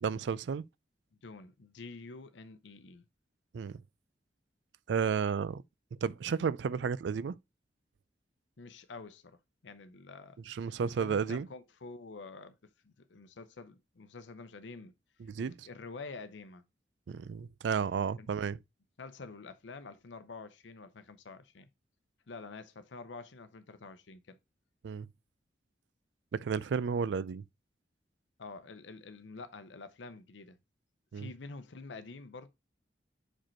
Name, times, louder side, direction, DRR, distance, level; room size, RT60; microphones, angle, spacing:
voice 1, 0.0-0.6 3.5-3.8 4.9-5.6 6.0-7.3 10.5-11.5 15.2-15.7 17.1-18.6 24.8-25.1 26.3-27.4 31.1-31.3, right 6 dB, 80° right, 0.4 m, -32 dB
voice 2, 1.2-3.0 8.6-9.4 9.6-14.9 15.4-16.6 18.2-18.3 19.0-21.7 22.3-24.4 28.4-30.6 31.1-32.5, left 4 dB, 90° left, 0.7 m, -48 dB
5.1 x 4.4 x 4.3 m
head